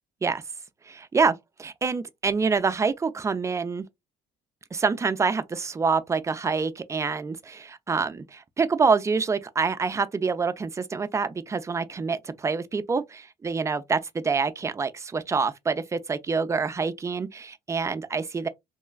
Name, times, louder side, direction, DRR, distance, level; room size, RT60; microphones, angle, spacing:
voice 1, 0.9-3.8 4.7-18.5, right 5 dB, 20° right, 0.3 m, -26 dB
3.0 x 2.2 x 2.3 m
cardioid pair, 110°, 17 cm